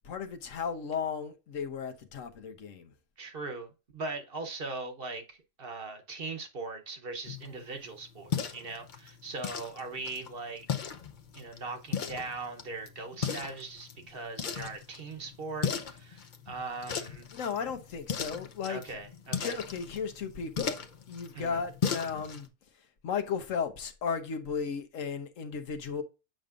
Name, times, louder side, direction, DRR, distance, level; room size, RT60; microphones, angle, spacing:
voice 1, 0.0-2.9 17.3-19.0 19.4-20.8 21.1-22.5 23.0-26.0, left 6 dB, 90° left, 1.3 m, -35 dB
voice 2, 3.2-10.7 11.3-17.3 18.6-19.6 21.3-21.6, right 3 dB, 50° right, 1.1 m, -40 dB
sound 1, 7.2-22.5, left 7 dB, 45° left, 0.7 m, -38 dB
7.8 x 5.2 x 2.5 m
omnidirectional pair, 1.3 m